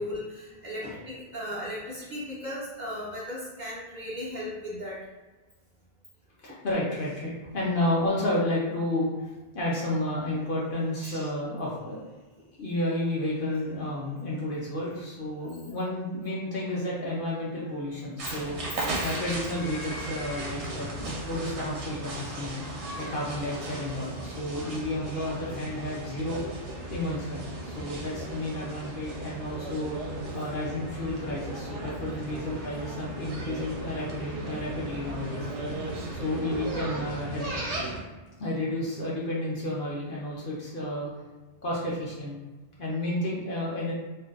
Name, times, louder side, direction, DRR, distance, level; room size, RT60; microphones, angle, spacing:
voice 1, 0.0-5.0 11.0-11.3 18.7-18.9, left 1 dB, 55° right, -7 dB, 0.6 m, -36 dB
voice 2, 6.4-9.3 9.5-12.0 12.6-22.6 23.0-26.4 26.9-30.0 30.3-35.5 36.1-37.5 38.4-41.1 41.6-42.4 42.8-43.9, left 1 dB, 60° left, -5 dB, 0.7 m, -31 dB
sound 1, 18.2-38.0, right 2 dB, 75° right, 0.9 m, -36 dB
2.5 x 2.2 x 2.3 m, 1.2 s
omnidirectional pair, 1.2 m